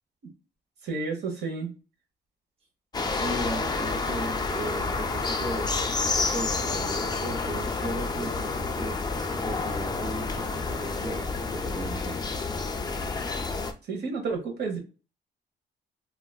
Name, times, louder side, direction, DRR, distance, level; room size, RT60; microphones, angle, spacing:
voice 1, 0.8-1.7 13.9-14.8, right 4 dB, 65° right, 2 dB, 1.0 m, -31 dB
sound 1, 2.9-13.7, left 4 dB, 20° left, 0.4 m, -29 dB
voice 2, 3.0-5.8 6.1-9.0 9.3-12.2, right 1 dB, 30° right, 0 dB, 0.7 m, -36 dB
3.6 x 2.4 x 2.2 m, 0.34 s
cardioid pair, 140°, 19 cm